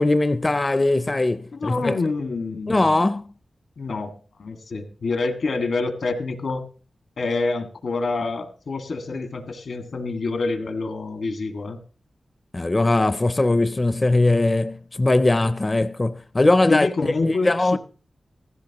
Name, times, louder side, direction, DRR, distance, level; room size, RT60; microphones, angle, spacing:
voice 1, 0.0-2.0 2.7-3.3 12.5-17.8, left 2 dB, 35° left, 0.5 m, -20 dB
voice 2, 1.5-2.9 3.8-4.1 4.4-6.6 7.2-11.8 16.7-17.8, left 3 dB, 80° left, 1.9 m, -27 dB
15.5 x 15.0 x 3.0 m
cardioid pair, 55°, 0 cm